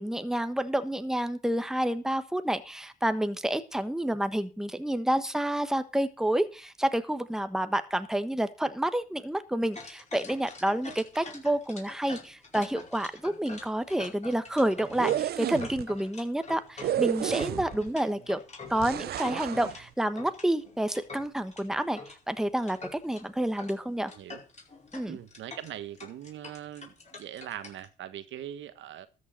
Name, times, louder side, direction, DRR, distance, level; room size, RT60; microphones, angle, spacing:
voice 1, 0.0-18.4 18.7-22.0 22.3-24.1 24.9-25.2, right 1 dB, ahead, 10 dB, 1.2 m, -29 dB
sound 1, 9.7-19.8 20.2-22.2 22.6-23.2 23.6-23.8 24.0-27.9, left 3 dB, 35° left, 4.9 m, -45 dB
sound 2, 14.9-15.8 16.8-17.9 18.8-19.8, right 11 dB, 50° right, 0.5 m, -31 dB
voice 2, 17.9-18.2 24.1-24.4 25.1-29.1, right 11 dB, 65° right, 12 dB, 1.4 m, -42 dB
13.0 x 6.6 x 6.6 m, 0.35 s
supercardioid pair, 65°, 21 cm